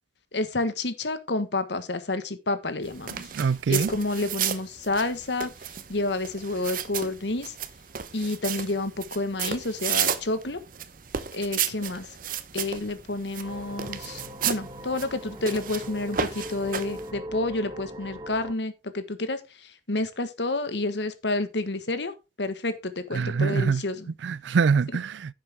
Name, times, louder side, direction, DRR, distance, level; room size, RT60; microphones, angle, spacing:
voice 1, 0.3-3.3 3.7-5.5 5.9-7.5 8.1-10.6 11.3-12.1 12.5-24.1, left 2 dB, 70° left, 1.4 m, -29 dB
sound 1, 2.8-17.1, right 8 dB, 50° right, 0.8 m, -33 dB
voice 2, 3.2-3.9 23.1-23.8 24.2-25.3, right 5 dB, 80° right, 0.4 m, -24 dB
sound 2, 13.4-18.5, equal, 25° right, 1.1 m, -40 dB
10.5 x 7.4 x 3.5 m
head